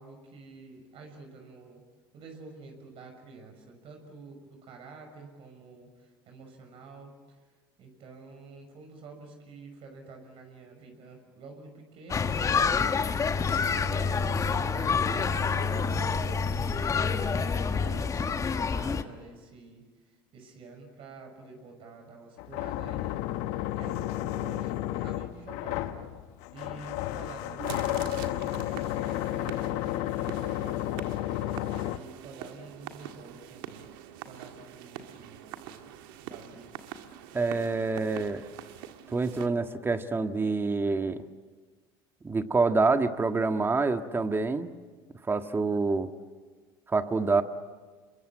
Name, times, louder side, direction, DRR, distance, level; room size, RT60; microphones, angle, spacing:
voice 1, 0.0-1.8 2.1-7.4 7.8-13.2 13.7-23.2 23.8-26.2 26.5-31.1 31.9-33.9 34.2-35.9 36.2-36.7, right 3 dB, 55° right, 4 dB, 6.1 m, -49 dB
sound 1, 12.1-19.0, left 5 dB, 30° left, 1.5 m, -27 dB
sound 2, 22.4-32.0, left 14 dB, 70° left, 1.2 m, -32 dB
sound 3, 27.6-39.5, right 11 dB, 75° right, 1.8 m, -44 dB
voice 2, 37.3-38.4 39.1-41.2 42.2-44.7 45.3-46.1 46.9-47.4, right 3 dB, 20° right, 8 dB, 1.6 m, -26 dB
27.5 x 23.0 x 8.7 m, 1.4 s
supercardioid pair, 90°, 12 cm